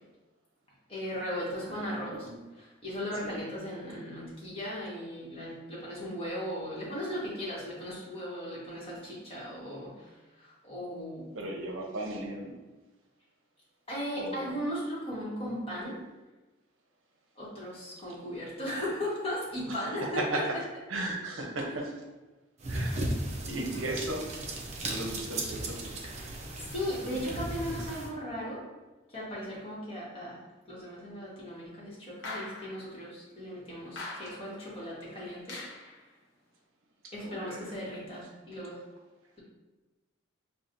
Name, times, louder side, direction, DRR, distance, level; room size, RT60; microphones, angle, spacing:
voice 1, 0.9-2.3 2.5-10.1 10.4-11.3 13.9-16.0 17.4-20.4 26.6-28.6 29.1-30.4 30.7-35.6 37.1-38.8, equal, 30° left, -6 dB, 1.2 m, -37 dB
voice 2, 1.5-2.4 3.2-3.4 11.3-12.6 14.2-14.6 19.7-20.6 20.9-21.9 22.7-23.0 23.5-24.3 24.9-25.9 34.0-34.1 37.2-37.6, right 2 dB, 75° right, 1 dB, 0.7 m, -36 dB
sound 1, 22.6-28.1, right 1 dB, 35° right, 0.5 m, -36 dB
sound 2, 32.2-32.9 34.0-34.6 35.5-36.0, left 2 dB, 65° left, 0.8 m, -41 dB
5.9 x 2.4 x 2.5 m, 1.2 s
head